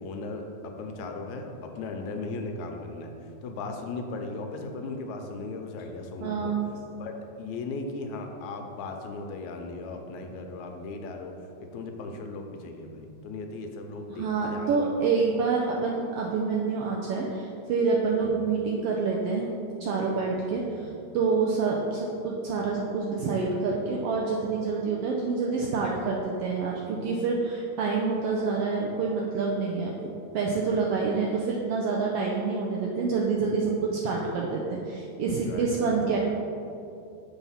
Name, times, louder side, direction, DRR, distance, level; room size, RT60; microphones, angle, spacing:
voice 1, 0.0-6.6 6.9-14.9 15.2-15.3 18.2-18.5 20.5-20.9 35.4-36.2, left 3 dB, 85° left, 4 dB, 2.0 m, -37 dB
voice 2, 6.2-6.7 14.1-19.5 19.8-20.9 21.1-30.1 30.3-36.2, right 4 dB, 80° right, -2 dB, 1.4 m, -27 dB
7.0 x 4.3 x 5.6 m, 2.6 s
omnidirectional pair, 3.3 m